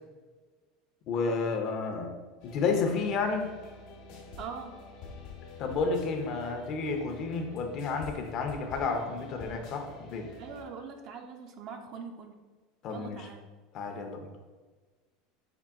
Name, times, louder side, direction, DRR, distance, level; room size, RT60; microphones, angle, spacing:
voice 1, 1.1-2.1 2.4-3.5 5.6-10.3 12.8-13.2 13.7-14.3, left 4 dB, 50° left, 4 dB, 0.6 m, -31 dB
sound 1, 2.4-10.6, left 4 dB, 70° left, 1.0 m, -47 dB
voice 2, 4.4-4.7 10.4-12.3 12.9-13.5, right 6 dB, 50° right, 5 dB, 0.5 m, -42 dB
4.6 x 2.2 x 3.5 m, 1.4 s
supercardioid pair, 125°, 0 cm